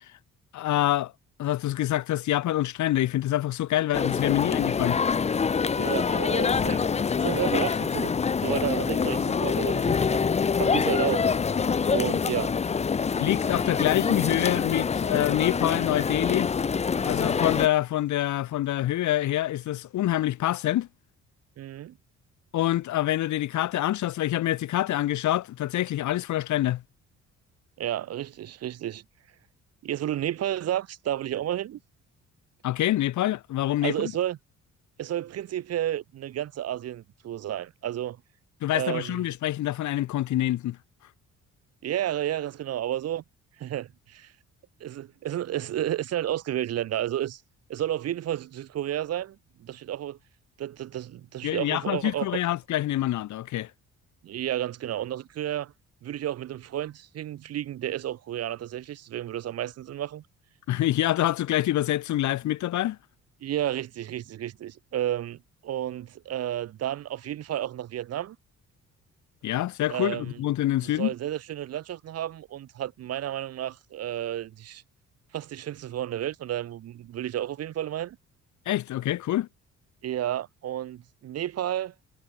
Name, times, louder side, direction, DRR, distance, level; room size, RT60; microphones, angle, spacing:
voice 1, 0.5-1.1 1.4-5.0 13.2-16.5 17.0-20.9 22.5-26.8 32.6-34.1 38.6-40.8 51.4-53.7 60.7-63.0 69.4-71.1 78.7-79.5, left 14 dB, 70° left, 1.0 m, -26 dB
sound 1, 3.9-17.7, left 6 dB, 20° left, 0.5 m, -25 dB
voice 2, 5.7-6.9 7.2-10.3 10.6-11.3 11.9-12.6 21.6-22.0 27.8-29.0 29.8-31.8 33.8-34.4 35.0-38.2 38.7-39.2 41.8-43.2 43.6-44.3 44.8-47.4 47.7-50.2 50.6-52.3 54.2-55.7 56.0-60.2 63.4-68.4 69.9-70.4 70.8-74.8 75.3-78.2 80.0-81.9, right 12 dB, 55° right, 0.7 m, -31 dB
cardioid pair, 90°, 30 cm